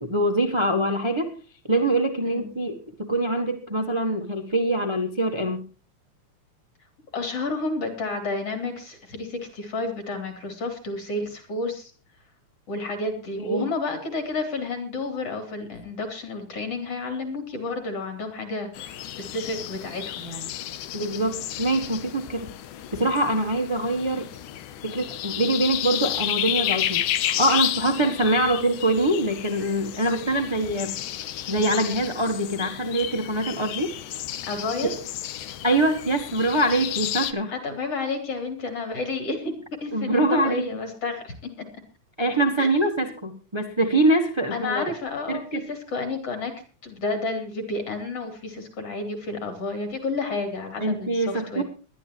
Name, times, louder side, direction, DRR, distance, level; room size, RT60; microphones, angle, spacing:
voice 1, 0.0-1.3 1.7-5.7 13.4-13.7 20.9-22.5 22.9-24.3 24.8-30.9 31.3-33.9 34.8-34.9 35.6-37.5 39.9-40.6 42.2-44.9 45.3-45.6 50.8-51.6, right 1 dB, 15° right, 3 dB, 0.8 m, -24 dB
voice 2, 7.1-11.9 12.7-20.5 34.5-34.9 37.5-39.5 39.8-41.3 42.6-43.1 44.5-46.5 46.8-51.6, left 3 dB, 50° left, 5 dB, 4.3 m, -31 dB
sound 1, 18.7-37.3, left 12 dB, 80° left, 2.4 m, -32 dB
21.0 x 12.0 x 3.1 m, 0.36 s
omnidirectional pair, 3.6 m